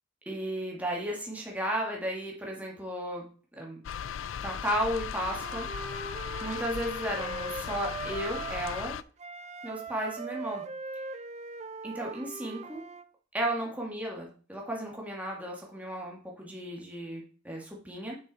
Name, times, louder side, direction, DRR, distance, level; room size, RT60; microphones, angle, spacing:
voice 1, 0.3-3.3 3.6-3.8 4.4-5.7 6.4-9.0 9.6-10.6 11.8-12.8 13.3-18.2, right 1 dB, 10° right, -1 dB, 1.9 m, -34 dB
sound 1, 3.8-9.0, left 8 dB, 80° left, 0.4 m, -37 dB
Wind instrument woodwind instrument, 5.1-8.9 9.2-13.1, right 4 dB, 35° right, 0.5 m, -40 dB
7.3 x 6.3 x 4.2 m, 0.40 s
head